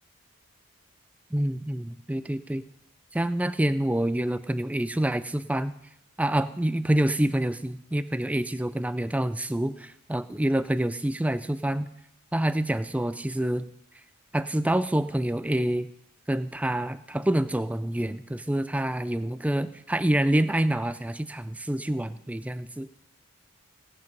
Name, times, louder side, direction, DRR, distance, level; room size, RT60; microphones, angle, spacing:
voice 1, 1.3-2.6 3.1-5.7 6.2-11.9 12.3-13.6 14.3-15.9 16.3-22.9, right 1 dB, 5° right, 13 dB, 0.4 m, -27 dB
17.0 x 7.8 x 5.4 m, 0.78 s
head